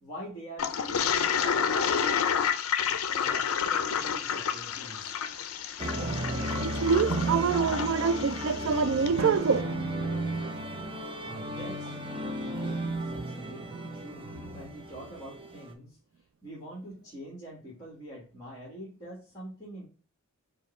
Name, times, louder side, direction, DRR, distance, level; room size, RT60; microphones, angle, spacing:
voice 1, 0.0-2.4 3.0-5.1 11.2-12.0 12.9-16.0 16.4-19.8, right 1 dB, 15° left, 1.6 m, -44 dB
Toilet flush, 0.6-9.2, left 7 dB, 75° left, 0.5 m, -30 dB
sound 1, 5.8-15.7, right 1 dB, 25° right, 0.6 m, -34 dB
voice 2, 6.6-9.7, right 5 dB, 60° right, 0.3 m, -26 dB
Drum, 9.2-11.2, right 4 dB, 80° right, 0.7 m, -40 dB
4.9 x 2.3 x 4.2 m
head